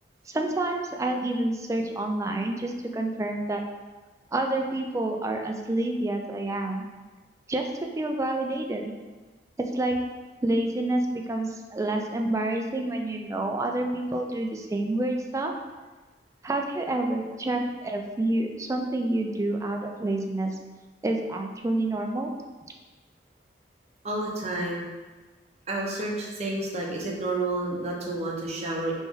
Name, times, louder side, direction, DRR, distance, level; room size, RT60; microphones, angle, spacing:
voice 1, 0.3-3.6 4.3-6.9 7.5-7.7 8.0-9.0 9.6-10.0 10.4-15.5 16.4-20.5 21.0-22.3, right 2 dB, 15° right, 2 dB, 0.3 m, -28 dB
voice 2, 24.0-24.9 25.7-28.9, right 2 dB, 35° right, -2 dB, 0.7 m, -30 dB
3.4 x 3.0 x 3.5 m, 1.3 s
head